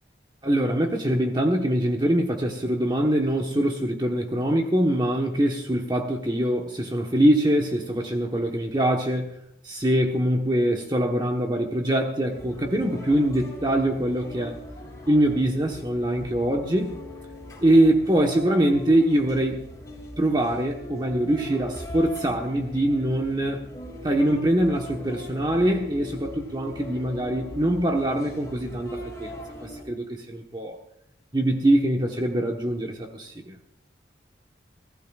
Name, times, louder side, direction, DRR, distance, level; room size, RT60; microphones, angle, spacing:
voice 1, 0.4-9.3 9.6-14.6 15.1-17.0 17.6-19.7 20.2-23.6 24.0-29.3 29.6-30.8 31.3-33.5, right 1 dB, 25° right, 1 dB, 1.2 m, -23 dB
sound 1, 12.3-29.8, left 1 dB, 20° left, 3.7 m, -39 dB
23.5 x 16.0 x 2.4 m, 0.75 s
head